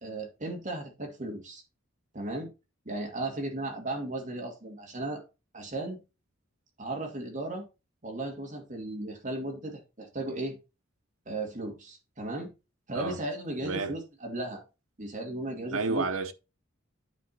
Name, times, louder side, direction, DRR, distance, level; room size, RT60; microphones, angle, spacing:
voice 1, 0.0-1.6 2.1-2.5 2.9-5.2 5.5-6.0 6.8-7.6 8.0-10.6 11.3-12.5 12.9-14.6 15.0-16.0, right 2 dB, 40° right, 2.3 m, -35 dB
voice 2, 13.6-14.0 15.7-16.3, right 4 dB, 85° right, 1.0 m, -30 dB
9.3 x 5.1 x 4.1 m
head